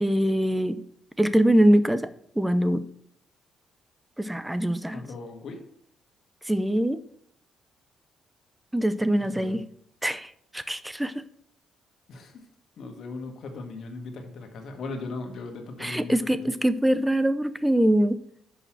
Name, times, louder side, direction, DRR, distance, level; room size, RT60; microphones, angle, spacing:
voice 1, 0.0-0.8 1.2-2.1 2.4-2.9 4.2-5.0 6.5-7.0 8.7-9.6 10.0-11.2 15.8-18.2, right 1 dB, 5° right, 13 dB, 0.6 m, -23 dB
voice 2, 4.9-5.6 9.2-9.6 12.1-12.5 12.8-16.4, left 3 dB, 65° left, 3 dB, 1.8 m, -38 dB
6.5 x 5.4 x 6.0 m, 0.65 s
cardioid pair, 90°, 0 cm